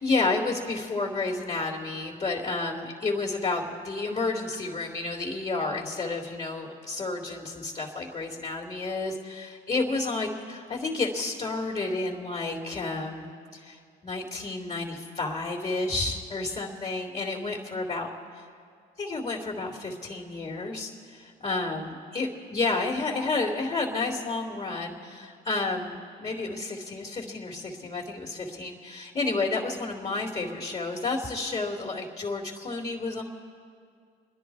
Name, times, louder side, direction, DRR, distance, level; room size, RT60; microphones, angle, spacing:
voice 1, 0.0-18.1 19.0-33.2, left 3 dB, 30° left, -2 dB, 2.5 m, -31 dB
29.0 x 10.5 x 4.7 m, 2.2 s
supercardioid pair, 75°, 20 cm